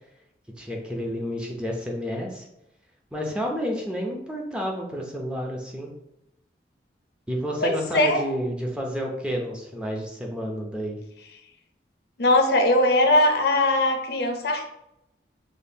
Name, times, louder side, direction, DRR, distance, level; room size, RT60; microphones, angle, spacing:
voice 1, 0.6-2.5 3.1-5.9 7.3-11.0, equal, 5° right, -1 dB, 0.5 m, -30 dB
voice 2, 7.6-8.2 12.2-14.7, left 1 dB, 65° left, 4 dB, 0.5 m, -20 dB
5.2 x 2.3 x 2.7 m, 0.83 s
head